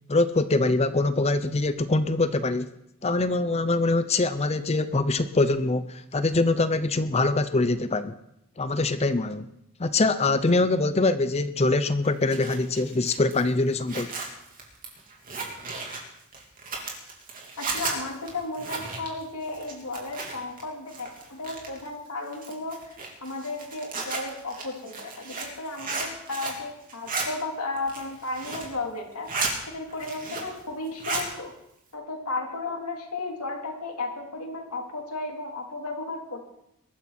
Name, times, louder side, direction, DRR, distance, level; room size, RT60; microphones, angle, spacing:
voice 1, 0.1-2.7 3.0-8.2 8.6-9.5 9.8-14.1, left 2 dB, 30° left, 12 dB, 0.6 m, -24 dB
Zipper (clothing), 12.0-20.6 20.9-21.9 22.3-26.6 26.9-27.3 27.7-28.7 29.1-29.5 29.9-30.6 30.9-31.3, right 4 dB, 40° right, 3.5 m, -34 dB
voice 2, 17.6-22.9 23.2-29.3 29.7-31.5 31.9-36.5, left 2 dB, 85° left, 1 dB, 3.7 m, -34 dB
21.5 x 13.0 x 4.4 m, 0.81 s
head